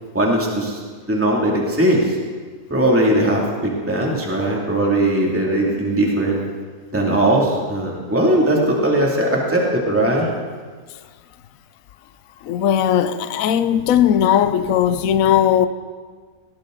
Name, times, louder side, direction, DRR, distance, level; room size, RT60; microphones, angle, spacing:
voice 1, 0.1-0.8 1.1-2.2 2.7-6.5 6.9-10.3, right 1 dB, 10° right, 2.5 m, -19 dB
voice 2, 12.4-15.7, left 10 dB, 65° left, 1.0 m, -17 dB
19.0 x 18.0 x 3.9 m
omnidirectional pair, 1.8 m